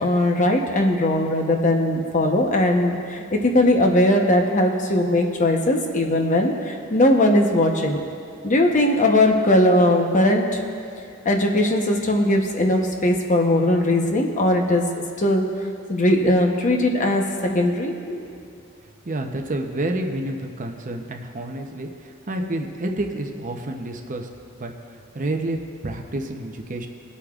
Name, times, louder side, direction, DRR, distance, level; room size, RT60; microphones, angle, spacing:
voice 1, 0.0-8.0 8.4-10.6 11.2-15.5 15.9-18.2, left 1 dB, 35° left, 2 dB, 0.9 m, -19 dB
voice 2, 19.0-24.3 24.6-24.7 25.1-25.6 25.8-26.9, right 1 dB, 40° right, 4 dB, 0.8 m, -29 dB
22.0 x 8.3 x 2.4 m, 2.5 s
head